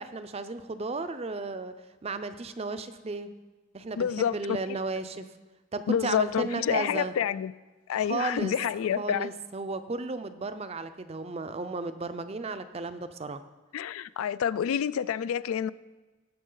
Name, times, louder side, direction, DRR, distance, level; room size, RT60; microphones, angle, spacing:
voice 1, 0.0-1.7 2.0-3.3 3.7-5.3 5.7-7.1 7.9-8.5 9.0-13.4, right 3 dB, 30° right, 0.5 m, -34 dB
voice 2, 4.0-4.4 4.7-4.8 5.9-7.5 7.9-9.3 13.7-15.7, left 8 dB, 80° left, 0.3 m, -28 dB
17.5 x 6.2 x 3.9 m
head